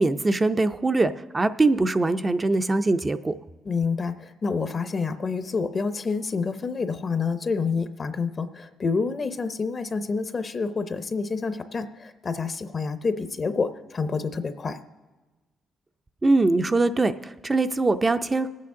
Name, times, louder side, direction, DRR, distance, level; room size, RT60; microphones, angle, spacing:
voice 1, 0.0-3.3 16.2-18.5, right 2 dB, 25° right, 10 dB, 0.4 m, -22 dB
voice 2, 3.7-14.8, left 4 dB, 40° left, 10 dB, 0.6 m, -28 dB
19.0 x 8.5 x 3.7 m, 1.2 s
cardioid pair, 90°, 0 cm